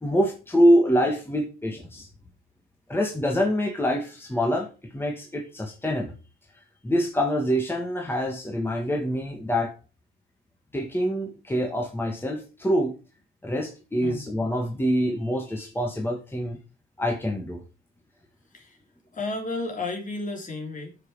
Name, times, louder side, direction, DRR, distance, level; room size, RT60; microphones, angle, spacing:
voice 1, 0.0-2.1 2.9-6.1 6.8-9.7 10.7-12.9 13.4-16.6 17.0-17.6, equal, 10° left, 2 dB, 1.8 m, -25 dB
voice 2, 19.1-21.0, left 2 dB, 40° left, 3 dB, 3.1 m, -32 dB
9.4 x 6.0 x 4.8 m, 0.32 s
cardioid pair, 90°, 20 cm